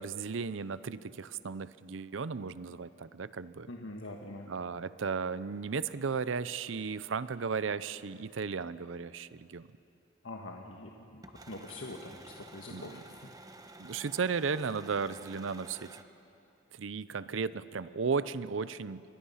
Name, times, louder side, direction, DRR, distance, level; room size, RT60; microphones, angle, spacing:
voice 1, 0.0-3.7 4.5-9.7 12.7-13.0 13.8-16.0 16.7-19.0, right 5 dB, 80° right, 16 dB, 0.6 m, -35 dB
voice 2, 3.7-4.5 10.2-13.3, left 2 dB, 80° left, 1 dB, 1.5 m, -44 dB
sound 1, 11.2-16.0, right 2 dB, 20° right, 1.0 m, -51 dB
28.0 x 23.0 x 5.7 m, 2.7 s
head